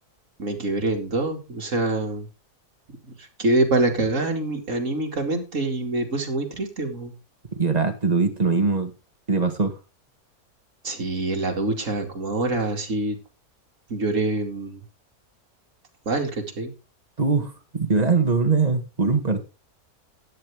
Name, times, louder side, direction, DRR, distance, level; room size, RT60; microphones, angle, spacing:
voice 1, 0.4-2.3 3.0-7.1 10.8-13.2 13.9-14.8 16.1-16.7, right 2 dB, 55° right, 2.7 m, -25 dB
voice 2, 7.6-8.9 9.3-9.8 17.2-19.4, right 4 dB, 25° right, 1.9 m, -22 dB
13.0 x 10.0 x 3.6 m
omnidirectional pair, 1.6 m